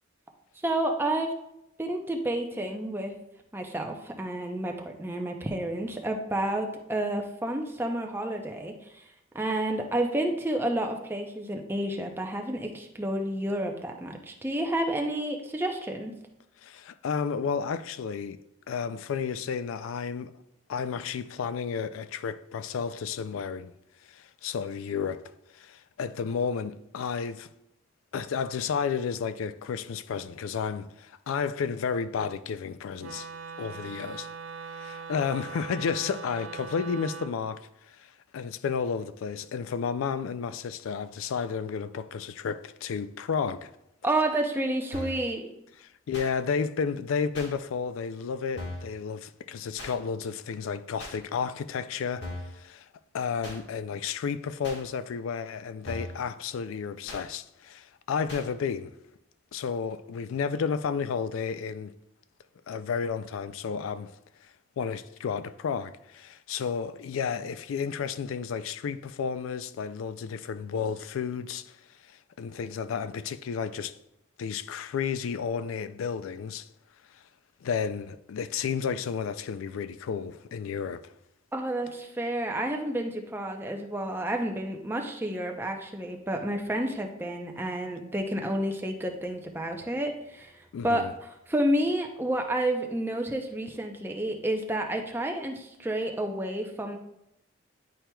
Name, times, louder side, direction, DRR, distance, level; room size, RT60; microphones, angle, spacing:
voice 1, 0.6-1.3 1.8-3.1 3.5-9.0 9.3-16.1 44.0-45.5 81.5-91.1 91.5-97.0, right 1 dB, 10° right, 0.5 m, -30 dB
voice 2, 16.6-18.4 18.7-20.3 20.7-23.7 24.1-25.2 25.5-27.5 28.1-33.3 33.6-34.3 34.7-43.7 46.1-52.3 52.5-52.9 53.1-58.9 59.5-61.9 62.7-64.2 64.8-71.8 72.4-74.0 74.4-76.7 77.6-81.1 90.7-91.1, left 6 dB, 90° left, 0.3 m, -32 dB
Wind instrument woodwind instrument, 33.0-37.4, right 5 dB, 80° right, 0.4 m, -41 dB
sound 1, 44.9-45.3 46.1-46.3 47.3-47.5 48.6-48.9 49.8-49.9 51.0-51.2 52.2-52.6 53.4-53.6 54.6-54.8 55.8-56.2 57.1-57.2 58.3-58.5, left 2 dB, 60° left, 1.5 m, -38 dB
10.0 x 4.5 x 2.2 m
head